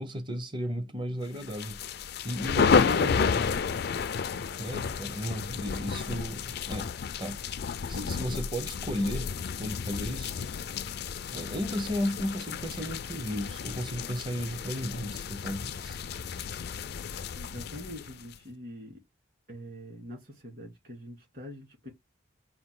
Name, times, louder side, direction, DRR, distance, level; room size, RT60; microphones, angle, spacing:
voice 1, 0.0-1.9 2.2-3.4 4.3-6.9 7.2-7.4 7.9-9.3 9.6-10.4 11.3-16.0, equal, 25° right, 0.7 m, -34 dB
sound 1, 1.4-18.4, left 6 dB, 50° left, 0.3 m, -31 dB
voice 2, 17.3-19.0 19.5-21.9, equal, 45° right, 2.3 m, -44 dB
4.4 x 2.6 x 3.7 m
head